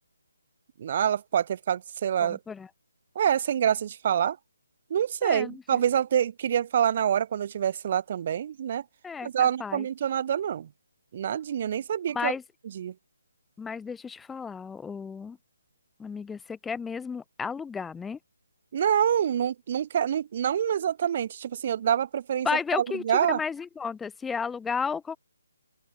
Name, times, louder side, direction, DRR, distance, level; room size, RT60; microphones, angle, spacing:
voice 1, 0.8-2.4 3.1-4.4 4.9-8.8 9.2-10.7 11.1-12.3 12.8-12.9 18.7-22.5 23.0-23.4, right 9 dB, 35° right, 6.0 m, -26 dB
voice 2, 2.2-2.7 5.2-5.8 9.0-9.9 12.1-12.4 13.6-15.4 16.0-18.2 22.4-25.2, left 5 dB, 5° left, 4.6 m, -33 dB
open air
hypercardioid pair, 165°, 0 cm